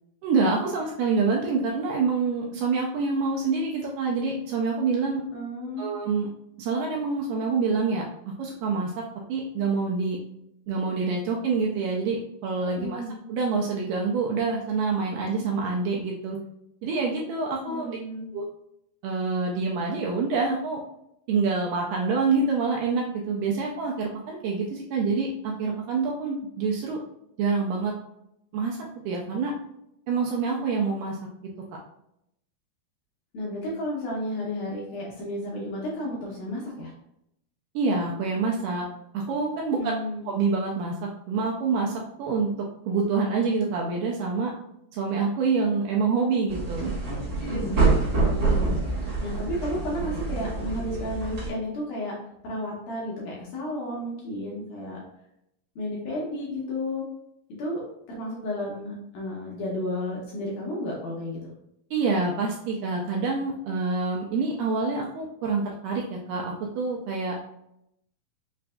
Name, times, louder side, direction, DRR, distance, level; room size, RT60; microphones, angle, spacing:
voice 1, 0.2-5.2 5.8-6.3 6.6-8.0 8.4-8.9 9.3-10.2 10.7-13.0 13.3-16.4 16.8-18.0 18.3-18.5 19.0-20.8 21.3-27.0 27.4-27.9 28.5-28.8 29.1-29.5 30.1-31.2 37.8-38.9 39.1-40.0 40.3-41.0 41.3-42.5 42.9-44.5 44.9-46.9 61.9-67.4, right 4 dB, 80° right, -1 dB, 1.9 m, -26 dB
voice 2, 5.3-6.0 12.8-13.1 17.7-18.3 33.3-36.9 39.8-40.3 47.5-48.8 49.2-52.1 52.4-55.0 55.8-57.1 57.6-57.8 58.1-61.4, left 1 dB, 75° left, -3 dB, 2.0 m, -32 dB
sound 1, 46.5-51.5, right 3 dB, 60° right, 1.2 m, -26 dB
5.7 x 2.5 x 2.2 m, 0.79 s
omnidirectional pair, 4.2 m